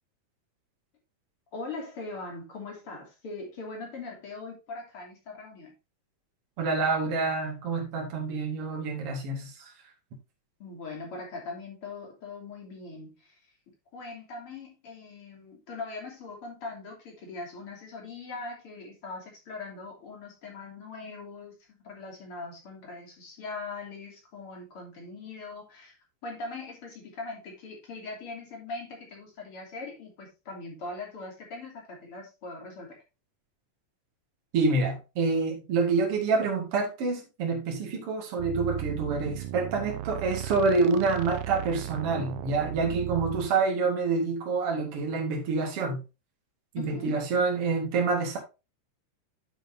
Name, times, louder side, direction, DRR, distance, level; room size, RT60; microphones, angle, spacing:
voice 1, 1.5-5.7 10.6-13.4 13.9-33.0 46.8-47.2, left 3 dB, 45° left, 0 dB, 3.6 m, -41 dB
voice 2, 6.6-9.7 34.5-46.0 46.7-48.4, right 4 dB, 50° right, 1 dB, 2.9 m, -27 dB
sound 1, 38.4-43.5, right 12 dB, 80° right, 2.0 m, -36 dB
9.7 x 7.5 x 2.7 m, 0.28 s
omnidirectional pair, 3.4 m